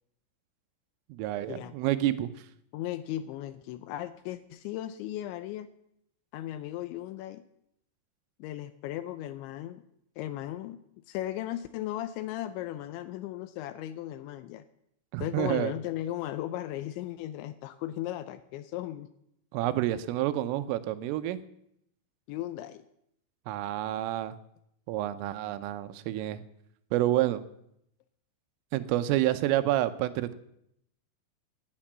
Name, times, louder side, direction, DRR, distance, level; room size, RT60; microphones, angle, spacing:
voice 1, 1.1-2.3 15.1-15.7 19.5-21.4 23.5-24.4 24.9-26.4 26.9-27.4 28.7-30.3, right 14 dB, 85° right, 12 dB, 3.4 m, -28 dB
voice 2, 2.7-5.7 6.3-7.4 8.4-9.8 10.2-10.8 11.1-14.6 15.2-19.1 22.3-22.8, left 13 dB, 80° left, 12 dB, 2.8 m, -36 dB
18.0 x 9.8 x 7.4 m, 0.76 s
omnidirectional pair, 5.8 m